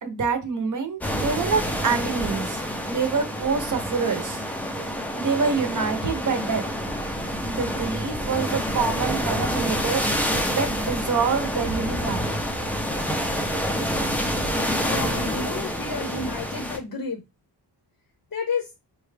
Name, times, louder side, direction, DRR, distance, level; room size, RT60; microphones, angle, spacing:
voice 1, 0.0-2.6 2.9-4.4 5.1-6.6 7.4-12.3, right 5 dB, 45° right, 0.7 m, -26 dB
sound 1, 1.0-16.8, equal, 5° left, 0.4 m, -27 dB
voice 2, 14.8-17.2 18.3-18.7, left 4 dB, 50° left, 0.6 m, -31 dB
4.0 x 2.3 x 3.2 m
wide cardioid pair, 160°, 43 cm